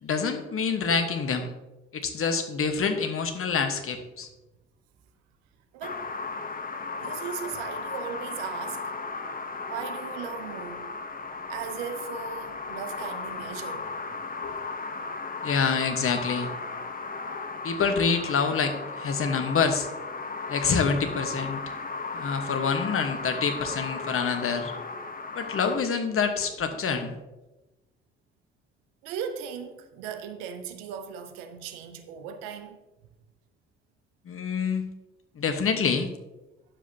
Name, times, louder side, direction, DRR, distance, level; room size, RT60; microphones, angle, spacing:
voice 1, 0.0-1.5 1.9-4.3 14.4-14.5 15.4-16.5 17.6-19.9 20.5-21.6 22.1-24.7 25.3-27.1 34.3-34.9 35.4-36.1, left 5 dB, 45° left, 1.3 m, -26 dB
voice 2, 5.7-6.1 7.0-8.9 9.7-10.8 11.5-13.9 29.0-32.8, right 7 dB, 75° right, 0.9 m, -37 dB
sound 1, 5.8-25.8, left 4 dB, 30° left, 0.9 m, -36 dB
9.9 x 7.2 x 2.8 m
hypercardioid pair, 45°, 31 cm